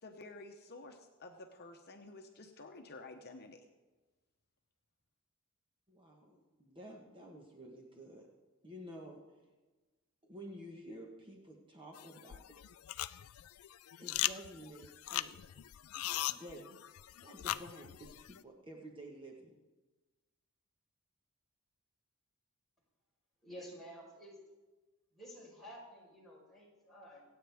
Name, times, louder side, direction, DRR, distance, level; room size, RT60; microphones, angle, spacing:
voice 1, 0.0-3.7, left 2 dB, 50° left, 4 dB, 0.9 m, -51 dB
voice 2, 5.9-8.3 8.6-9.5 10.2-12.4 14.0-15.3 16.3-16.6 17.2-19.5, equal, 25° right, 0 dB, 1.3 m, -51 dB
sound 1, 12.0-18.4, left 14 dB, 70° left, 0.4 m, -40 dB
voice 3, 23.4-24.4 25.1-27.2, equal, ahead, -5 dB, 4.3 m, -51 dB
25.5 x 8.8 x 3.5 m, 1.2 s
head